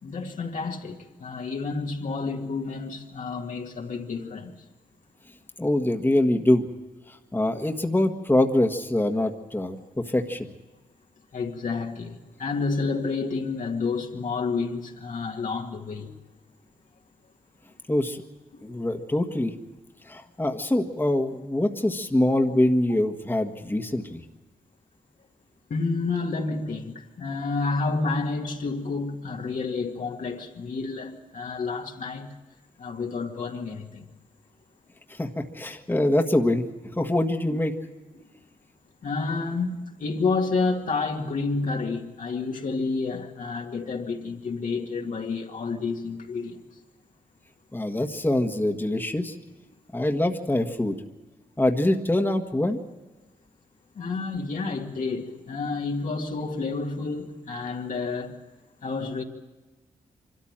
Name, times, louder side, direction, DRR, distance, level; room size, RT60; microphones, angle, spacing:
voice 1, 0.0-4.5 11.3-16.1 25.7-32.3 32.8-34.0 38.1-38.3 39.0-46.6 49.7-49.8 54.0-58.4 58.8-59.2, left 4 dB, 70° left, 2.2 m, -30 dB
voice 2, 5.6-6.7 7.1-10.5 17.9-18.2 18.6-19.5 20.0-24.2 35.1-36.6 37.0-37.7 47.7-49.3 49.9-51.0 51.6-52.8, left 1 dB, 15° left, 1.5 m, -24 dB
24.5 x 13.0 x 8.9 m
cardioid pair, 55°, 14 cm